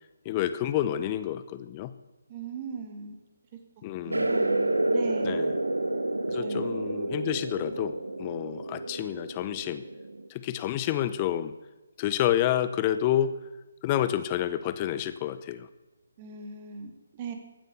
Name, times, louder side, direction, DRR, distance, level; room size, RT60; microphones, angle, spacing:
voice 1, 0.2-1.9 3.8-4.3 5.2-5.5 6.3-9.8 10.3-11.5 12.0-13.4 13.8-15.7, left 12 dB, 25° left, 13 dB, 0.8 m, -29 dB
voice 2, 2.3-3.2 3.5-3.6 4.0-5.4 6.3-6.7 16.2-17.3, right 5 dB, 30° right, 5 dB, 2.1 m, -39 dB
sound 1, 4.1-10.3, right 2 dB, 80° right, 1.1 m, -29 dB
15.0 x 9.2 x 7.1 m, 1.1 s
figure-of-eight pair, 145°, 0 cm